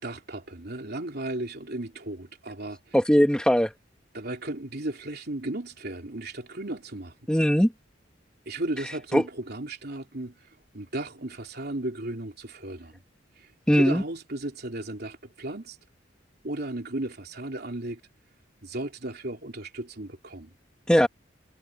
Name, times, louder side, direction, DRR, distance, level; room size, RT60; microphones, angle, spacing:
voice 1, 0.0-3.0 4.1-7.1 8.4-10.5 10.7-13.0 13.4-13.5 13.8-15.8 16.4-18.0 18.6-20.5, right 1 dB, 55° right, 3.3 m, -35 dB
voice 2, 2.9-3.7 7.3-7.7 9.1-9.2 13.7-14.0 20.9-21.1, equal, 5° left, 1.3 m, -20 dB
head